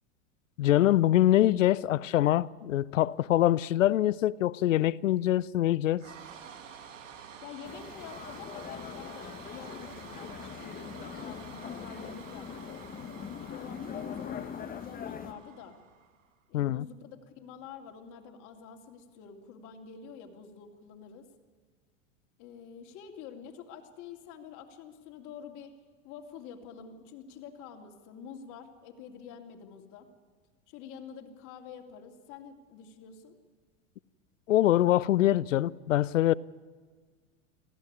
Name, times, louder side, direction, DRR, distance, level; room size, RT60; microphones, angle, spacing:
voice 1, 0.6-6.0 16.5-16.8 34.5-36.3, left 13 dB, 90° left, 0.6 m, -24 dB
sound 1, 6.0-16.3, right 7 dB, 80° right, 2.3 m, -49 dB
voice 2, 7.4-12.8 13.5-15.8 16.5-21.3 22.4-25.7 26.0-30.1 30.7-33.3, left 7 dB, 50° left, 3.0 m, -47 dB
sound 2, 7.6-15.3, left 8 dB, 25° left, 1.0 m, -42 dB
18.0 x 15.0 x 9.6 m
hypercardioid pair, 100°, 37 cm